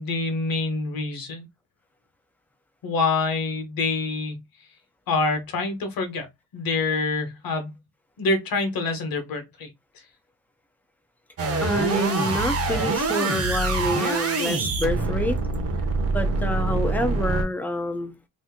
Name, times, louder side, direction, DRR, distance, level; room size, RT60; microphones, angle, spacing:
voice 1, 0.0-1.4 2.8-4.4 5.1-7.8 8.2-9.7, left 3 dB, 55° left, 1.1 m, -26 dB
sound 1, 11.4-17.4, right 3 dB, 35° right, 0.8 m, -25 dB
voice 2, 11.6-15.4 16.1-18.2, left 1 dB, 5° left, 0.4 m, -27 dB
2.9 x 2.5 x 3.6 m
cardioid pair, 155°, 42 cm